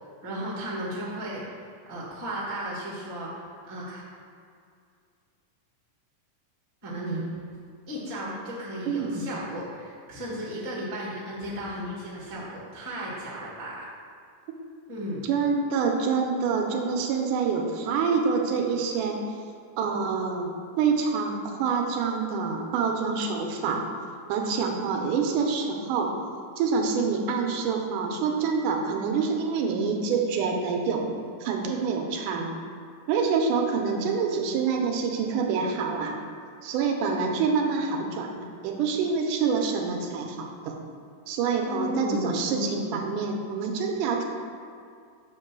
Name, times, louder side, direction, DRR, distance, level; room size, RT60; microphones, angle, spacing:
voice 1, 0.2-1.4 1.9-3.3 3.6-4.0 6.8-7.2 7.9-13.9 14.9-15.3 41.6-43.0, equal, 30° right, -7 dB, 0.6 m, -34 dB
voice 2, 6.9-7.2 8.9-9.2 15.2-19.2 19.8-20.5 20.8-23.8 24.3-26.1 26.6-32.5 33.1-36.2 36.6-40.8 41.3-44.2, right 5 dB, 85° right, 2 dB, 2.1 m, -26 dB
7.3 x 3.0 x 5.9 m, 2.3 s
omnidirectional pair, 3.7 m